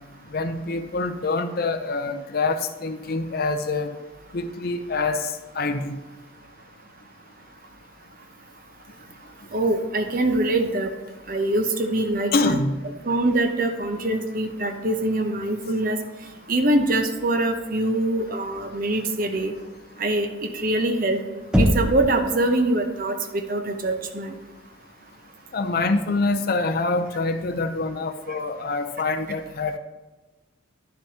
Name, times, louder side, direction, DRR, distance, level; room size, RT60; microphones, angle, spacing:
voice 1, 0.3-3.9 4.3-6.0 12.3-12.8 25.5-29.8, left 3 dB, 50° left, 8 dB, 0.5 m, -25 dB
voice 2, 9.5-10.9 11.3-12.5 13.0-16.0 16.5-19.5 20.0-21.2 21.6-24.4, right 2 dB, 45° right, 6 dB, 0.8 m, -24 dB
Knock, 21.5-22.2, equal, 5° right, 0.7 m, -20 dB
11.0 x 6.9 x 2.8 m, 1.2 s
head